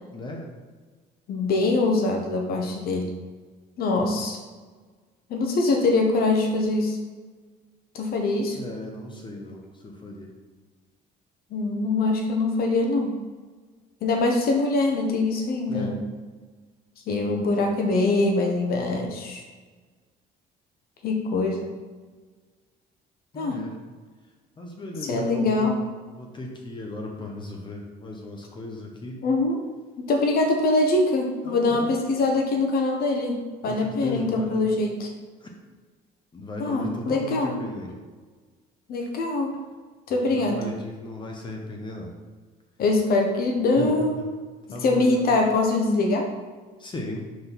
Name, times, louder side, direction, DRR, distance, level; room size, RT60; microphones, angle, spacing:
voice 1, 0.1-0.5 8.5-10.3 15.7-16.0 17.4-17.8 23.3-23.7 24.6-25.6 26.1-29.2 31.5-31.9 33.6-34.6 35.4-35.5 36.3-37.9 40.1-42.1 43.8-44.3 44.7-45.1 46.8-47.3, left 1 dB, 30° left, 0 dB, 1.1 m, -36 dB
voice 2, 1.3-3.2 3.8-4.4 5.3-7.0 7.9-8.6 11.5-13.2 14.0-16.0 17.1-19.4 21.0-21.7 23.3-23.6 25.1-25.7 29.2-29.6 30.0-35.1 36.6-37.5 38.9-39.6 40.1-40.8 42.8-44.2 44.8-46.3, left 2 dB, 65° left, 2 dB, 1.1 m, -23 dB
5.0 x 4.1 x 5.8 m, 1.4 s
cardioid pair, 110°, 17 cm